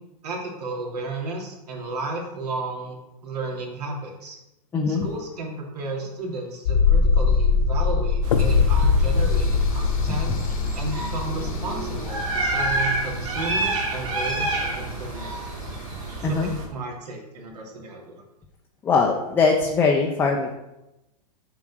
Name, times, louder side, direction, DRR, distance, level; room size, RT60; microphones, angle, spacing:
voice 1, 0.2-4.4 4.9-10.3 10.7-15.6 16.2-18.2, right 3 dB, 85° right, -1 dB, 2.5 m, -33 dB
voice 2, 4.7-5.1 10.1-10.2 16.2-16.5 18.8-20.5, left 4 dB, 10° left, 0 dB, 0.5 m, -21 dB
sound 1, 6.7-13.5 13.8-13.9, left 5 dB, 65° left, 0.8 m, -22 dB
sound 2, 8.2-16.7, right 2 dB, 55° right, 2.6 m, -29 dB
7.4 x 3.8 x 6.1 m, 0.93 s
hypercardioid pair, 155°, 20 cm